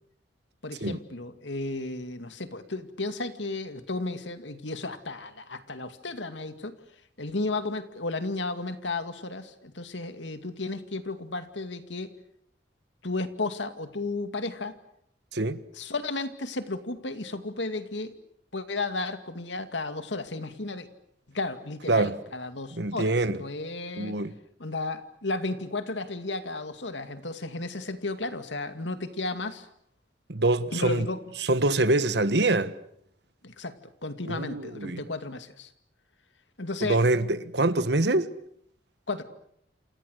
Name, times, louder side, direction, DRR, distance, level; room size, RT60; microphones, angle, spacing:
voice 1, 0.6-6.8 7.2-12.1 13.0-14.8 15.8-18.1 18.5-20.9 21.3-24.2 24.6-29.7 30.7-31.2 33.4-33.8 34.0-35.7 36.6-37.0 39.1-39.2, left 2 dB, 85° left, 2.3 m, -33 dB
voice 2, 21.9-22.2 22.7-23.4 24.0-24.4 30.3-31.1 31.4-32.8 34.2-35.0 36.9-38.3, right 2 dB, 70° right, 1.4 m, -25 dB
28.5 x 28.0 x 6.6 m
head